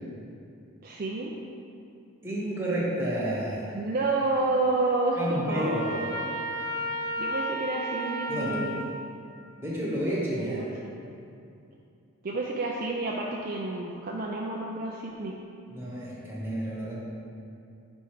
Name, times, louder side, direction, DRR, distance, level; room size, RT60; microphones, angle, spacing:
voice 1, 0.8-1.3 3.7-6.4 7.2-8.8 10.4-10.9 12.2-15.4, right 2 dB, 40° right, -2 dB, 0.4 m, -30 dB
voice 2, 2.2-3.8 5.2-6.1 8.3-8.7 9.6-10.6 15.7-16.9, equal, 10° right, -7 dB, 1.1 m, -30 dB
Trumpet, 5.5-8.9, equal, 65° right, 0.9 m, -33 dB
5.2 x 4.5 x 4.8 m, 2.5 s
head